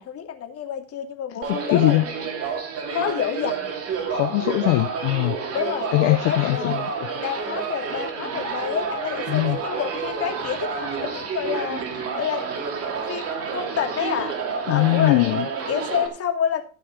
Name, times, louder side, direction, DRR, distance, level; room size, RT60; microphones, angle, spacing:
voice 1, 0.0-2.2 2.9-3.7 5.5-6.9 7.2-12.8 13.1-14.4 14.7-16.6, left 9 dB, 40° left, 2.5 m, -29 dB
voice 2, 1.3-2.0 4.1-5.4 5.9-7.1 9.3-9.6 14.7-15.5, left 19 dB, 65° left, 0.9 m, -21 dB
sound 1, 1.4-16.1, right 5 dB, 40° right, 2.7 m, -29 dB
15.0 x 5.5 x 5.2 m
supercardioid pair, 105°, 36 cm